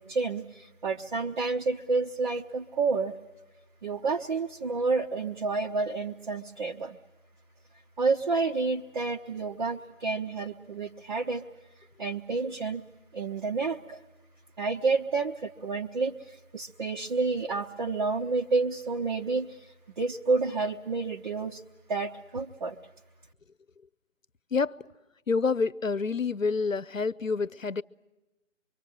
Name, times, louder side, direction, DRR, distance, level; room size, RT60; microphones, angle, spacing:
voice 1, 0.0-3.1 3.8-7.0 8.0-11.5 12.0-12.8 13.1-14.0 14.6-21.6 21.9-22.8, right 4 dB, 40° right, 1.1 m, -29 dB
voice 2, 24.5-24.8 25.3-27.8, left 4 dB, 85° left, 0.8 m, -28 dB
25.0 x 25.0 x 8.7 m
figure-of-eight pair, 150°, 38 cm